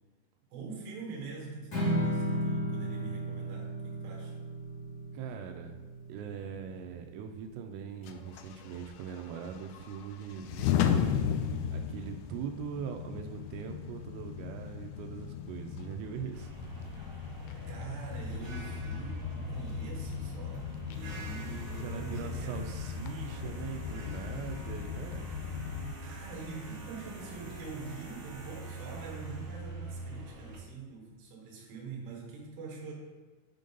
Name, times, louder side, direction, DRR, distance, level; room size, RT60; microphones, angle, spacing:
voice 1, 0.5-4.4 17.7-22.7 26.0-32.9, right 4 dB, 60° right, -3 dB, 2.9 m, -44 dB
Strum, 1.7-8.0, right 1 dB, 35° left, 1.5 m, -35 dB
voice 2, 5.1-5.7 6.1-16.8 21.8-25.3, right 7 dB, 85° right, 5 dB, 3.1 m, -41 dB
sound 1, 8.0-25.9, left 8 dB, 85° left, 2.9 m, -36 dB
sound 2, 16.3-30.6, right 2 dB, 40° right, 2.1 m, -44 dB
8.3 x 3.8 x 5.2 m, 1.3 s
omnidirectional pair, 5.7 m